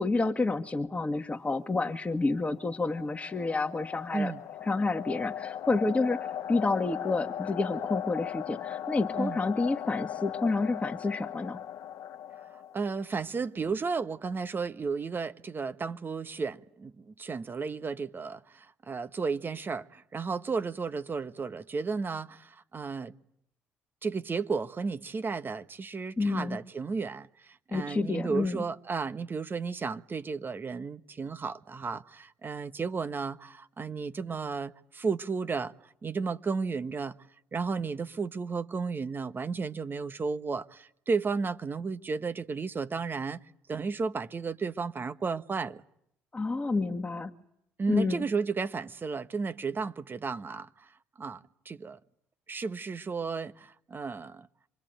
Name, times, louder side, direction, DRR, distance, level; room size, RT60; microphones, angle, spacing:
voice 1, 0.0-4.3 4.6-11.6 26.2-26.6 27.7-28.6 46.3-47.3 47.9-48.2, left 3 dB, 20° left, 1.9 m, -29 dB
sound 1, 2.2-13.1, left 10 dB, 65° left, 1.0 m, -38 dB
voice 2, 12.5-23.1 24.0-37.2 37.5-43.4 43.7-45.8 47.8-52.0 52.5-54.5, right 4 dB, 35° right, 1.3 m, -33 dB
27.0 x 23.5 x 9.1 m
hypercardioid pair, 60°, 6 cm